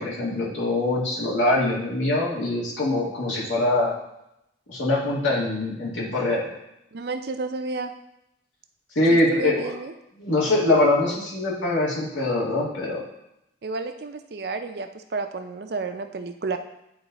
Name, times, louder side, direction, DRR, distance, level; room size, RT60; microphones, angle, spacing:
voice 1, 0.0-3.9 4.7-6.5 9.0-9.6 10.2-13.0, left 2 dB, 90° left, -5 dB, 2.1 m, -23 dB
voice 2, 6.9-7.9 9.1-9.9 13.6-16.6, right 3 dB, 55° right, 7 dB, 0.5 m, -31 dB
9.3 x 3.2 x 4.0 m, 0.84 s
head